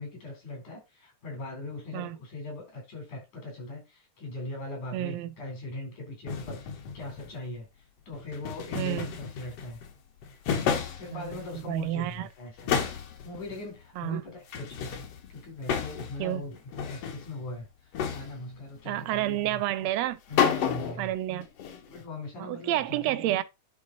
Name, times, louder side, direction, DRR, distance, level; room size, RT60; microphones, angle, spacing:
voice 1, 0.0-7.7 8.1-9.8 10.9-12.7 13.2-15.0 15.3-17.7 18.1-19.6 20.3-21.1 21.8-23.4, left 2 dB, 80° left, 5.4 m, -40 dB
voice 2, 4.9-5.3 8.7-9.1 11.1-11.3 11.7-12.3 14.0-14.2 16.2-16.4 18.9-20.2 21.0-21.5 22.4-23.4, right 14 dB, 75° right, 1.7 m, -29 dB
sound 1, 6.3-7.4 8.1-9.9 10.2-11.8 12.1-12.2 12.6-13.6 14.5-16.3 16.5-17.3 17.9-18.6 20.0-20.1 20.3-21.1 21.4-22.0, left 7 dB, 65° left, 2.0 m, -32 dB
10.0 x 3.9 x 4.0 m
omnidirectional pair, 3.4 m